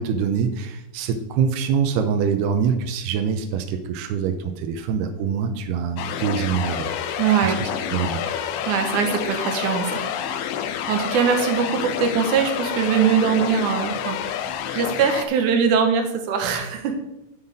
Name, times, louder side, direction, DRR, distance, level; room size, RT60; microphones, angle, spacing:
voice 1, 0.0-6.9 7.4-8.3, right 7 dB, 90° right, 6 dB, 2.8 m, -24 dB
sound 1, 6.0-15.3, left 9 dB, 85° left, 2.0 m, -28 dB
voice 2, 7.2-7.7 8.6-10.0 10.9-14.2 14.7-17.0, right 7 dB, 65° right, 5 dB, 2.1 m, -21 dB
9.7 x 5.6 x 5.1 m, 0.94 s
omnidirectional pair, 4.6 m